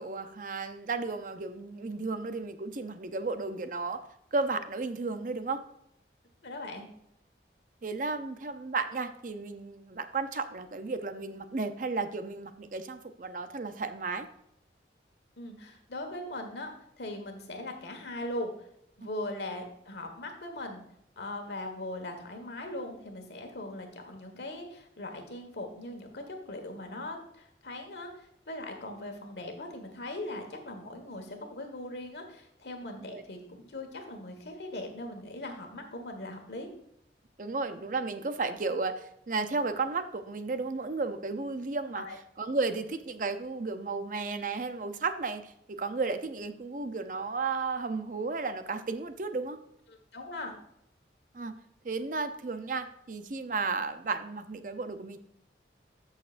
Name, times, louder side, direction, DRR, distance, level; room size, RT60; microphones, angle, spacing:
voice 1, 0.0-4.0 4.3-5.6 7.8-14.3 33.1-33.2 37.4-42.0 42.4-49.6 51.3-51.5 51.8-55.2, right 3 dB, 45° right, 9 dB, 0.5 m, -33 dB
voice 2, 6.4-6.9 15.4-18.7 19.0-20.8 21.2-36.7 42.0-42.2 50.1-50.6, left 1 dB, 70° left, 4 dB, 1.5 m, -40 dB
13.5 x 6.5 x 2.5 m, 0.75 s
head